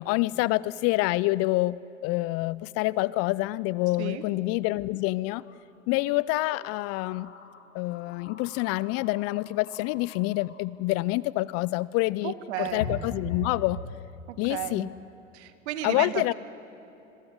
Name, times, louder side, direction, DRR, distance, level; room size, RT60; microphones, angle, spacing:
voice 1, 0.0-5.4 5.9-7.3 7.7-13.8 14.4-14.9 15.8-16.3, left 19 dB, 40° left, 21 dB, 0.6 m, -27 dB
sound 1, 3.0-3.1 3.5-3.6 5.4-5.6 6.5-10.8 12.0-12.1 12.5-13.7, left 4 dB, 70° left, 3.0 m, -41 dB
voice 2, 12.2-13.0 14.3-14.9 15.3-16.3, right 12 dB, 60° right, 11 dB, 2.3 m, -34 dB
26.5 x 22.5 x 9.7 m, 3.0 s
figure-of-eight pair, 90°, 38 cm